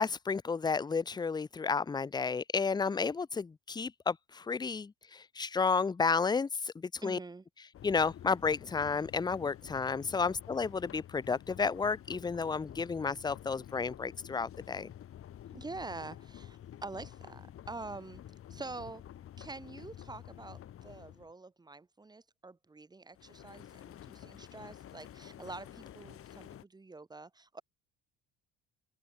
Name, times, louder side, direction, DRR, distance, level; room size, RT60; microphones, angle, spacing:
voice 1, 0.0-7.2 7.8-14.9, left 5 dB, 15° left, 0.9 m, -32 dB
voice 2, 7.0-7.4 15.5-18.2 18.5-19.0 19.4-27.6, right 3 dB, 10° right, 2.9 m, -46 dB
sound 1, 7.7-21.3 23.1-26.6, left 11 dB, 45° left, 5.8 m, -50 dB
open air
cardioid pair, 165°, 32 cm